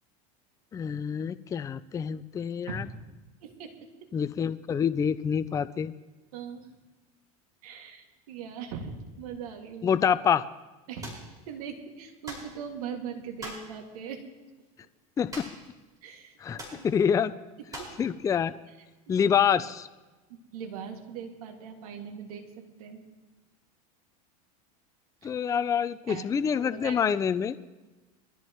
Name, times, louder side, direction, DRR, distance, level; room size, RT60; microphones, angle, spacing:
voice 1, 0.7-2.8 4.1-5.9 9.8-10.4 15.2-15.5 16.4-17.3 18.0-18.5 19.1-19.9 25.2-27.6, left 7 dB, 20° left, 13 dB, 0.4 m, -26 dB
voice 2, 3.4-3.7 4.0-4.1 6.3-6.7 7.6-10.0 10.9-11.2 11.5-14.3 16.0-16.3 16.7-16.9 17.8-17.9 19.1-19.3 20.3-23.0 25.2-25.3 26.1-26.3 26.6-27.1, right 6 dB, 85° right, 3 dB, 2.2 m, -40 dB
sound 1, 11.0-11.3 12.3-12.5 13.4-13.7 15.3-15.7 16.0-16.1 16.6-16.8 17.7-18.0, right 1 dB, 20° right, 5.1 m, -41 dB
23.0 x 13.5 x 3.1 m, 1.1 s
supercardioid pair, 120°, 18 cm